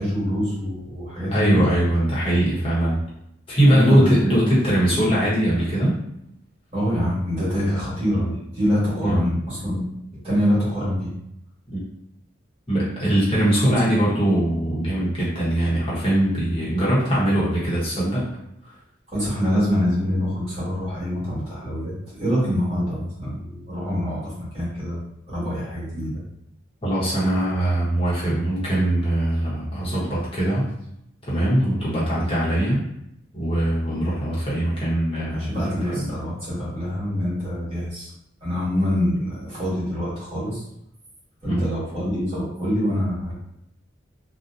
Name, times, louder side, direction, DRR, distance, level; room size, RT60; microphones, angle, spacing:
voice 1, 0.0-1.6 3.7-4.3 6.7-9.8 10.2-11.1 13.5-13.6 19.1-25.0 25.3-26.2 35.3-38.1 38.4-40.6 41.4-43.3, equal, 30° right, -9 dB, 1.3 m, -25 dB
voice 2, 1.3-3.0 3.5-6.0 9.0-9.3 11.7-11.8 12.7-18.2 18.6-18.7 26.8-30.7 31.3-32.8 33.3-36.1 41.4-41.7, right 1 dB, 30° left, -8 dB, 0.9 m, -21 dB
2.7 x 2.1 x 2.4 m, 0.79 s
head